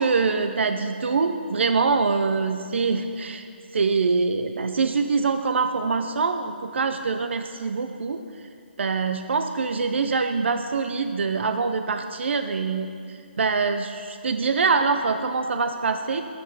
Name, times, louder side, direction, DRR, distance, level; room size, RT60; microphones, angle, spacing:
voice 1, 0.0-3.4 3.7-8.2 8.8-16.2, right 4 dB, 80° right, 8 dB, 0.6 m, -24 dB
12.5 x 7.9 x 4.8 m, 2.4 s
hypercardioid pair, 160°, 6 cm